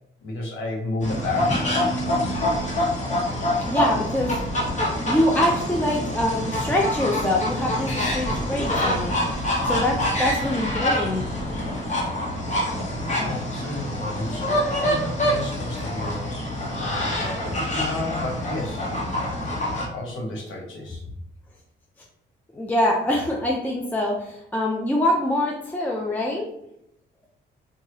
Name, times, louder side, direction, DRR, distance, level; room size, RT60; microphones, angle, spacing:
voice 1, 0.2-1.8 2.2-2.3 13.0-18.9 19.5-21.0, left 2 dB, 75° left, 0 dB, 0.8 m, -32 dB
sound 1, 1.0-19.9, left 1 dB, 35° left, 1.1 m, -26 dB
voice 2, 3.7-4.4 5.0-9.2 9.6-11.2 22.5-26.5, left 1 dB, 10° left, -2 dB, 0.4 m, -24 dB
3.1 x 2.3 x 2.8 m, 0.78 s
cardioid pair, 90°, 20 cm